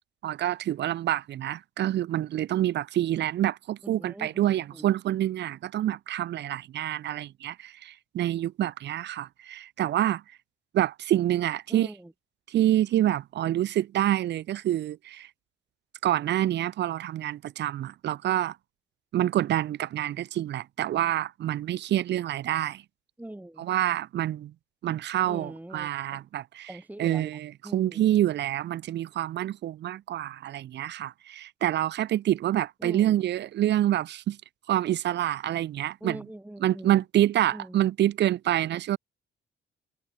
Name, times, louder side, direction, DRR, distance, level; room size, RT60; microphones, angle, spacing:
voice 1, 0.2-10.2 10.7-11.9 12.5-15.3 16.0-18.6 19.1-22.8 23.6-24.5 24.8-26.7 27.0-34.4 34.7-36.2 36.6-39.0, right 12 dB, 60° right, 0.6 m, -27 dB
voice 2, 3.8-4.9 11.7-12.1 23.2-23.7 25.3-26.2 26.7-27.3 27.6-28.0 32.8-33.2 36.0-37.0 37.5-37.9, right 1 dB, 10° right, 2.4 m, -42 dB
cardioid pair, 90°, 20 cm